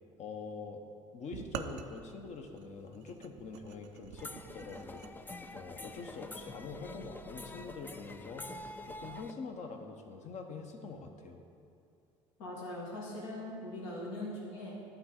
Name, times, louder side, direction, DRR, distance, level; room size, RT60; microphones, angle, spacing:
voice 1, 0.2-0.8 1.1-5.0 5.5-8.5 8.8-11.4, left 4 dB, 50° left, 4 dB, 0.9 m, -45 dB
sound 1, 1.3-5.1, right 9 dB, 75° right, 0.4 m, -46 dB
sound 2, 4.2-9.3, left 2 dB, 10° left, 0.4 m, -46 dB
voice 2, 12.4-14.8, left 1 dB, 75° left, -4 dB, 1.6 m, -41 dB
11.0 x 3.9 x 4.3 m, 2.5 s
hypercardioid pair, 65°, 16 cm